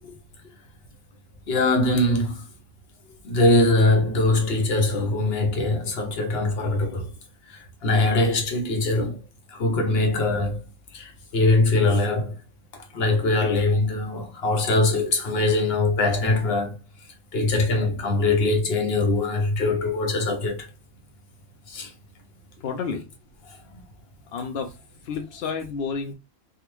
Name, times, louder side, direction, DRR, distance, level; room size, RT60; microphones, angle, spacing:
voice 1, 1.5-2.4 3.2-7.1 7.8-9.2 9.5-10.6 10.9-12.3 12.9-16.7 17.3-20.7 21.7-21.9 23.8-23.9, left 2 dB, 50° left, 0.9 m, -22 dB
voice 2, 22.6-23.1 24.3-24.7 25.1-26.1, left 5 dB, 70° left, 0.6 m, -30 dB
3.5 x 2.4 x 3.0 m
omnidirectional pair, 1.5 m